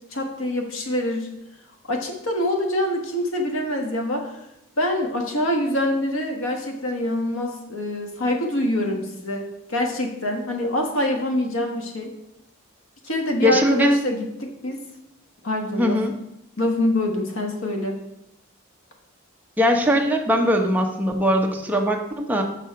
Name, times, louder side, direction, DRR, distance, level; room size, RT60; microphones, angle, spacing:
voice 1, 0.1-1.3 1.9-4.4 4.8-12.1 13.0-14.8 15.4-16.0 16.6-18.0, left 1 dB, 80° left, 3 dB, 1.3 m, -25 dB
voice 2, 13.4-14.0 15.8-16.1 19.6-22.4, equal, 10° right, 1 dB, 0.7 m, -20 dB
6.1 x 5.9 x 4.6 m, 0.85 s
head